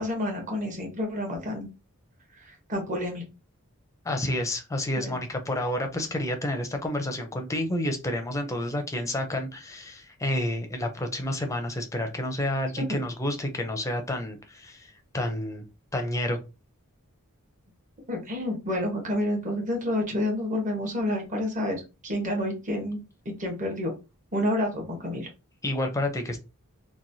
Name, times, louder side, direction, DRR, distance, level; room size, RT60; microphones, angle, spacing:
voice 1, 0.0-1.7 2.4-3.2 5.0-5.2 12.8-12.9 18.1-23.0 23.2-23.9 24.3-25.3, left 1 dB, 35° right, 1.0 m, -29 dB
voice 2, 4.0-15.6 15.9-16.4 25.6-26.4, left 1 dB, 15° left, 0.5 m, -29 dB
3.0 x 2.2 x 2.6 m
head